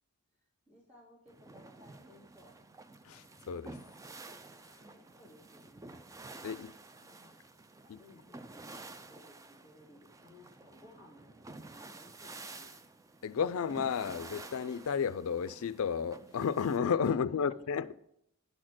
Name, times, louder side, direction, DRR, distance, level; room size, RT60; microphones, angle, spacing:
voice 1, 0.7-2.6 4.8-6.0 6.9-7.4 7.8-12.7 17.1-17.6, left 1 dB, 30° right, 3.1 m, -59 dB
sound 1, 1.3-16.8, right 2 dB, 15° right, 0.3 m, -51 dB
voice 2, 3.0-3.8 6.4-6.7 7.9-8.0 13.2-18.0, left 6 dB, 65° left, 0.4 m, -32 dB
10.5 x 4.4 x 6.0 m
head